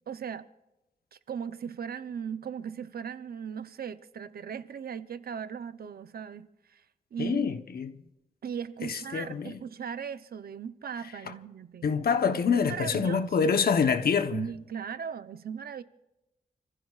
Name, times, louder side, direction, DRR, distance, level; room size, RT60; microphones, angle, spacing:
voice 1, 0.1-0.5 1.1-6.8 7.1-7.5 8.4-11.9 12.6-13.6 14.3-15.8, right 7 dB, 75° right, 0.7 m, -38 dB
voice 2, 7.2-7.9 8.8-9.6 11.8-14.4, left 6 dB, 75° left, 1.0 m, -26 dB
29.0 x 15.0 x 2.4 m
wide cardioid pair, 100°, 16 cm